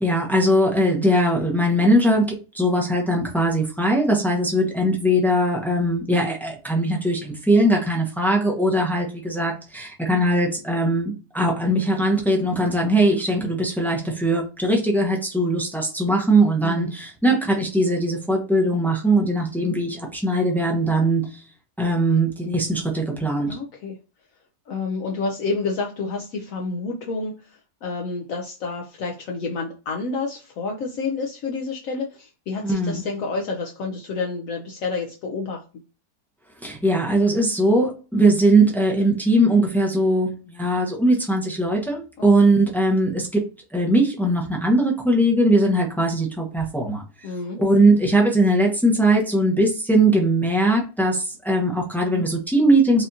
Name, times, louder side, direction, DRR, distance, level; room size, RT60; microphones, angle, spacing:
voice 1, 0.0-21.2 21.8-23.6 32.6-33.0 36.6-43.4 43.7-47.0 47.6-53.1, right 1 dB, ahead, -1 dB, 0.5 m, -20 dB
voice 2, 23.5-24.0 24.7-35.6 47.2-47.6, left 4 dB, 65° left, 1 dB, 0.9 m, -29 dB
4.9 x 2.5 x 2.7 m, 0.32 s
omnidirectional pair, 1.7 m